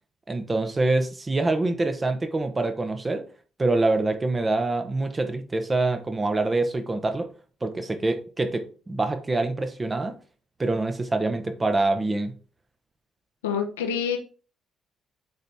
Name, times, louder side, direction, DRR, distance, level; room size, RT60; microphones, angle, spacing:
voice 1, 0.3-3.2 3.6-7.3 7.6-10.2 10.6-12.3, right 2 dB, 25° right, 1.1 m, -25 dB
voice 2, 13.4-14.2, left 7 dB, 75° left, 0.8 m, -26 dB
8.0 x 4.1 x 3.5 m
figure-of-eight pair, 45°, 0 cm